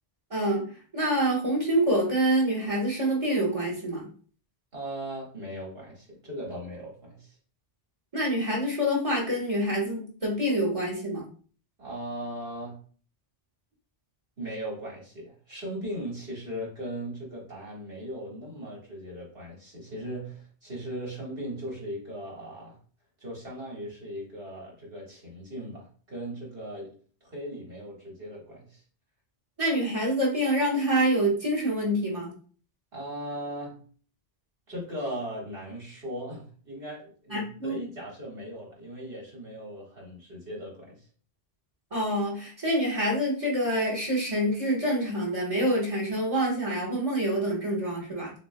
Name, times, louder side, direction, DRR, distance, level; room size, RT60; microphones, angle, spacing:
voice 1, 0.3-0.6 0.9-4.1 8.1-11.2 29.6-32.3 37.3-37.8 41.9-48.3, right 1 dB, 30° right, -4 dB, 1.4 m, -26 dB
voice 2, 4.7-7.4 11.8-12.8 14.4-22.8 23.2-28.8 32.9-33.8 34.7-41.1, equal, 60° right, -4 dB, 2.0 m, -38 dB
6.6 x 2.6 x 2.2 m, 0.43 s
omnidirectional pair, 1.1 m